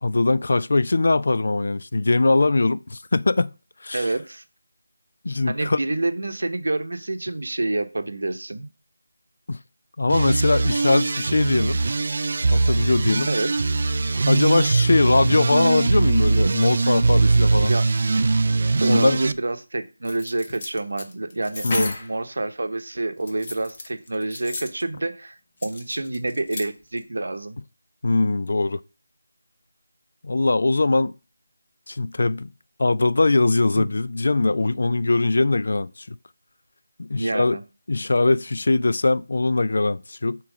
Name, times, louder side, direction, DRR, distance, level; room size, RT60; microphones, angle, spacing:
voice 1, 0.0-3.5 3.8-4.0 5.2-5.8 9.5-9.6 10.0-11.8 12.5-13.3 14.3-17.7 18.8-19.2 21.6-21.9 28.0-28.8 30.2-31.1 31.9-32.5 32.8-36.2 37.0-37.6 37.9-40.4, left 3 dB, 55° left, 0.3 m, -21 dB
voice 2, 3.9-4.4 5.5-8.7 13.3-13.7 17.7-17.9 18.8-27.6 33.7-33.9 37.2-37.6, right 2 dB, 70° right, 0.8 m, -28 dB
sound 1, 10.1-19.3, right 3 dB, 45° right, 0.3 m, -21 dB
sound 2, 20.0-22.1 23.2-24.8 25.6-26.7 27.0-27.1, left 2 dB, 30° left, 0.9 m, -34 dB
7.3 x 3.0 x 4.9 m
figure-of-eight pair, 175°, 0 cm